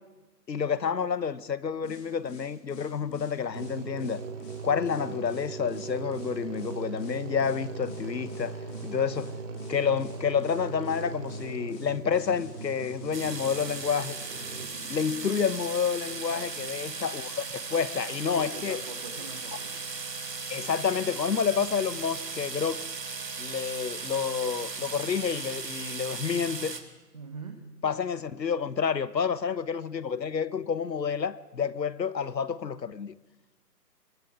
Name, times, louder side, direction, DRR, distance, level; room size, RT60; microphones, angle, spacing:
voice 1, 0.5-4.2 4.6-9.4 9.7-14.2 14.9-18.8 20.5-22.8 23.4-26.8 27.8-33.2, left 6 dB, 90° left, 1.2 m, -29 dB
sound 1, 1.8-15.7, equal, 10° left, 2.0 m, -48 dB
sound 2, 3.5-14.7, right 4 dB, 50° right, 2.8 m, -39 dB
sound 3, 13.1-26.8, right 4 dB, 85° right, 3.0 m, -37 dB
voice 2, 16.1-16.7 18.3-19.7 27.1-27.6, right 4 dB, 25° right, 1.1 m, -43 dB
24.5 x 23.0 x 5.0 m
hypercardioid pair, 170°, 49 cm